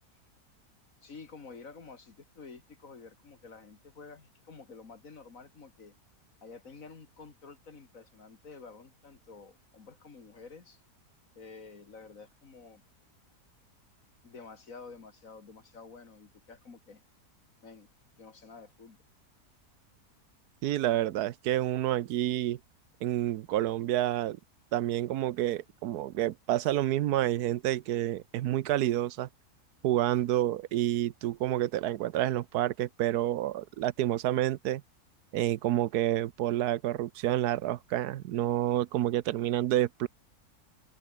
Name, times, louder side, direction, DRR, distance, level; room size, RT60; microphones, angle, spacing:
voice 1, 1.0-5.9 6.4-10.8 11.4-12.8 14.2-17.0 17.6-17.9 18.2-19.0, left 4 dB, 55° left, 2.6 m, -50 dB
voice 2, 20.6-22.6 23.0-24.4 24.7-29.3 29.8-34.8 35.3-40.1, right 13 dB, 80° right, 1.2 m, -29 dB
omnidirectional pair, 1.7 m